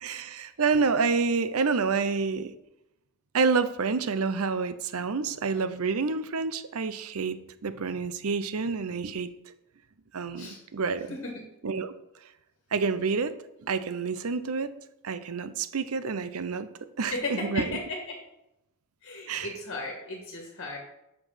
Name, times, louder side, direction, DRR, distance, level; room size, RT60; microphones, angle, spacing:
voice 1, 0.0-2.5 3.3-9.3 10.1-11.1 11.6-11.9 12.7-13.3 13.6-14.7 15.0-16.7 17.0-17.8 19.3-19.5, right 4 dB, 75° right, 12 dB, 0.7 m, -28 dB
voice 2, 11.1-11.5 17.1-18.2 19.0-20.8, left 2 dB, 55° left, 1 dB, 1.6 m, -35 dB
8.0 x 6.9 x 5.7 m, 0.88 s
head